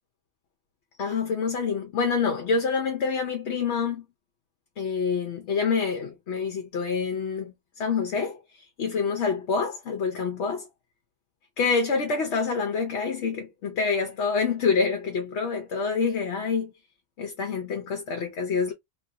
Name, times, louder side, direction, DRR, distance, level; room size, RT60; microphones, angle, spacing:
voice 1, 1.0-4.0 4.8-10.7 11.6-16.7 17.2-18.7, left 5 dB, 65° left, 1.0 m, -27 dB
3.4 x 2.6 x 2.7 m
omnidirectional pair, 1.3 m